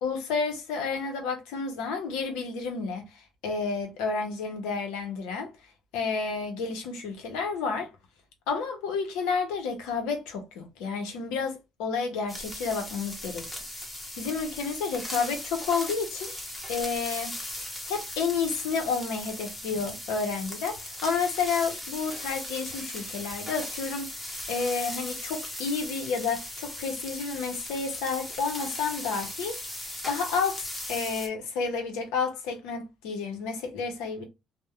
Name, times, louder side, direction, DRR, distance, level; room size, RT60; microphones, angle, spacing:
voice 1, 0.0-5.5 5.9-7.9 8.5-13.4 14.2-16.3 16.7-17.4 17.9-30.6 30.9-34.2, left 5 dB, 90° left, 0.7 m, -30 dB
sound 1, 12.3-31.3, left 1 dB, 15° left, 0.9 m, -38 dB
2.7 x 2.1 x 2.3 m
supercardioid pair, 85°, 0 cm